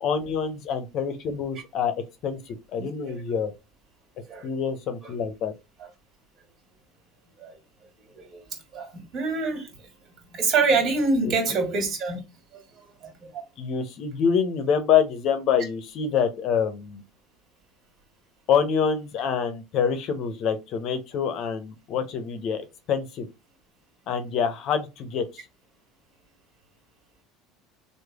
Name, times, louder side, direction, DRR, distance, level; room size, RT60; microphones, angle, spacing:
voice 1, 0.0-1.9 2.2-3.5 4.4-5.5 11.2-11.3 13.6-17.0 18.5-23.3 24.1-25.4, left 7 dB, 55° left, 0.7 m, -26 dB
voice 2, 2.8-3.2 4.3-4.5 5.0-5.1 5.8-5.9 7.4-7.6 8.0-9.9 10.3-12.2 12.5-13.4, right 4 dB, 45° right, 1.7 m, -27 dB
3.2 x 2.2 x 3.4 m
supercardioid pair, 100°, 0 cm